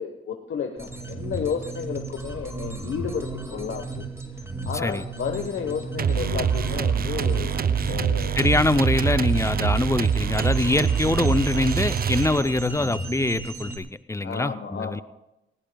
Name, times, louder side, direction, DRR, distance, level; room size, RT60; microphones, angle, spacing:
voice 1, 0.0-4.1 4.6-7.6 7.9-8.4 12.3-13.0 14.2-15.0, left 6 dB, 65° left, 4 dB, 1.2 m, -32 dB
sound 1, 0.8-13.8, right 2 dB, 15° right, 2.0 m, -35 dB
sound 2, 6.0-12.7, right 7 dB, 45° right, 0.5 m, -25 dB
voice 2, 8.3-15.0, left 2 dB, 15° left, 14 dB, 0.5 m, -24 dB
19.0 x 17.0 x 2.3 m, 0.91 s
cardioid pair, 70°, 21 cm